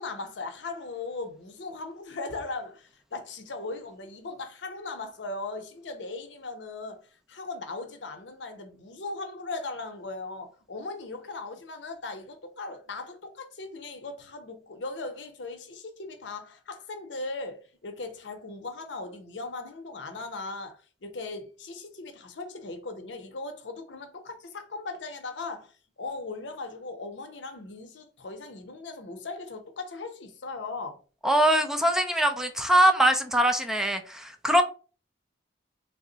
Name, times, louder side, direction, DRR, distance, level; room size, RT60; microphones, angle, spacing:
voice 1, 0.0-31.0, left 3 dB, 75° left, 0.7 m, -38 dB
voice 2, 31.2-34.6, right 1 dB, 5° right, 0.3 m, -22 dB
3.4 x 2.1 x 3.8 m
head